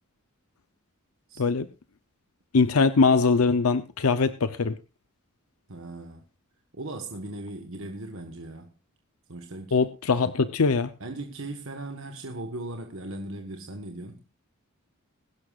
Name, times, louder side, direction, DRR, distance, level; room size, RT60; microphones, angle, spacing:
voice 1, 1.4-1.7 2.5-4.8 9.7-10.9, left 4 dB, 90° left, 0.7 m, -22 dB
voice 2, 5.7-6.2 6.7-8.7 9.3-9.8 11.0-14.2, right 2 dB, 65° right, 1.5 m, -38 dB
22.0 x 11.0 x 2.5 m
head